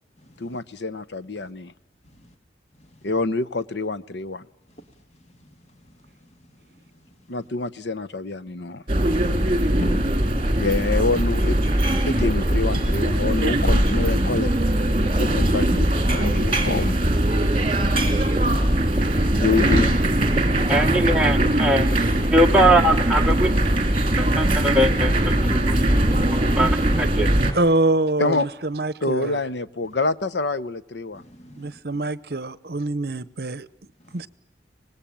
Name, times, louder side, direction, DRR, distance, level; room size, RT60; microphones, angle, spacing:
voice 1, 0.4-1.7 3.0-4.5 7.3-8.8 10.6-11.6 12.1-14.5 15.2-17.0 19.4-20.0 28.2-28.5 29.0-31.2, left 3 dB, 75° left, 0.9 m, -26 dB
sound 1, 8.9-27.5, right 1 dB, 30° right, 2.9 m, -20 dB
voice 2, 13.7-14.4 14.9-15.2 15.6-15.8 16.2-16.3 17.9-18.9 19.2-19.4, left 1 dB, 35° left, 1.9 m, -37 dB
voice 3, 20.7-22.0 22.3-23.5 24.2-25.8 26.3-27.3, right 1 dB, 5° right, 1.5 m, -21 dB
voice 4, 27.5-29.4 31.6-33.7 34.1-34.3, right 2 dB, 55° right, 0.9 m, -24 dB
25.0 x 19.5 x 8.9 m
head